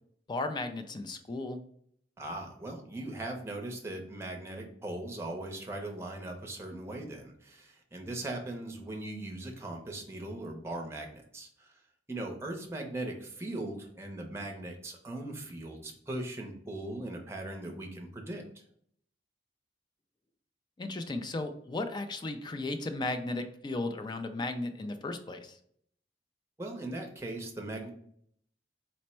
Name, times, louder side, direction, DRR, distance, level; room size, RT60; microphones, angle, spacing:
voice 1, 0.3-1.6 20.8-25.6, left 2 dB, 25° left, 8 dB, 0.3 m, -35 dB
voice 2, 2.2-11.7 12.1-18.4 26.6-27.9, right 1 dB, 15° right, 2 dB, 0.6 m, -39 dB
4.2 x 2.1 x 4.2 m, 0.65 s
head